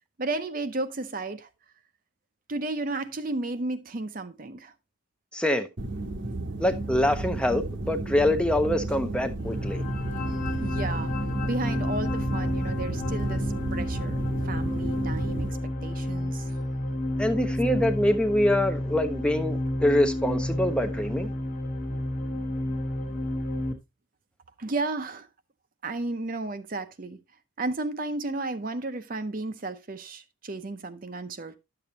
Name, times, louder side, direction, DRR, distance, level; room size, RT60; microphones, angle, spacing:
voice 1, 0.2-1.5 2.5-4.7 10.2-11.1 11.4-16.8 24.6-25.3 25.8-27.2 27.6-31.6, right 2 dB, 40° right, 0.6 m, -33 dB
voice 2, 5.3-5.7 6.6-9.8 17.2-21.3, left 1 dB, 5° left, 0.6 m, -25 dB
sound 1, 5.8-15.5, right 2 dB, 65° right, 1.0 m, -33 dB
sound 2, 9.4-23.7, left 1 dB, 40° left, 1.0 m, -30 dB
10.5 x 6.8 x 2.8 m
head